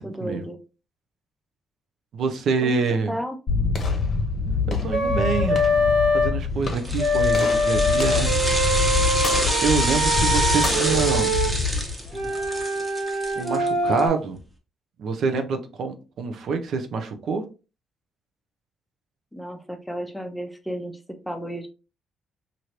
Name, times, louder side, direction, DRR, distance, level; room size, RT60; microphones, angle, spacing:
voice 1, 0.0-0.6 2.6-2.8 3.1-3.4 19.3-21.7, equal, 5° left, 6 dB, 0.6 m, -33 dB
voice 2, 2.1-3.1 4.7-5.6 6.1-8.3 9.6-11.3 13.3-14.4 15.0-17.5, right 5 dB, 65° right, 6 dB, 0.5 m, -26 dB
sound 1, 3.5-12.6, left 4 dB, 45° left, 0.8 m, -26 dB
Wind instrument woodwind instrument, 4.9-6.3 7.0-11.5 12.1-14.1, left 1 dB, 50° right, 1.3 m, -23 dB
sound 2, 6.7-14.0 14.3-14.4, right 1 dB, 15° right, 1.0 m, -28 dB
3.0 x 2.6 x 2.8 m, 0.32 s
cardioid pair, 90°, 0 cm